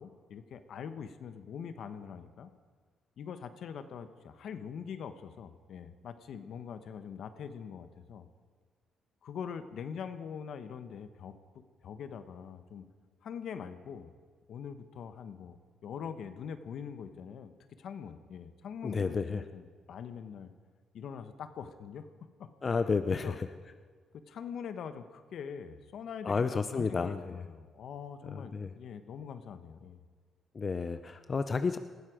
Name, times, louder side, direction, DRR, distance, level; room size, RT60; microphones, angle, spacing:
voice 1, 0.0-2.5 3.2-8.3 9.2-12.9 13.2-14.1 14.5-17.5 17.8-20.5 20.9-22.1 22.4-22.8 23.1-23.4 24.1-30.0, left 7 dB, 70° left, 10 dB, 1.1 m, -43 dB
voice 2, 18.8-19.4 22.6-23.3 26.2-27.4 28.3-28.7 30.5-31.8, left 4 dB, 35° left, 10 dB, 0.6 m, -31 dB
19.0 x 14.5 x 5.1 m, 1.5 s
cardioid pair, 90°, 0 cm